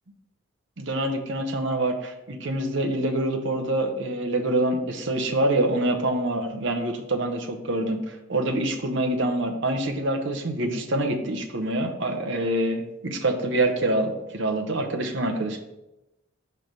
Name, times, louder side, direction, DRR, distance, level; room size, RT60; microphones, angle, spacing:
voice 1, 0.8-8.0 8.3-15.6, right 1 dB, 55° right, 4 dB, 0.8 m, -26 dB
5.8 x 3.2 x 5.2 m, 0.94 s
head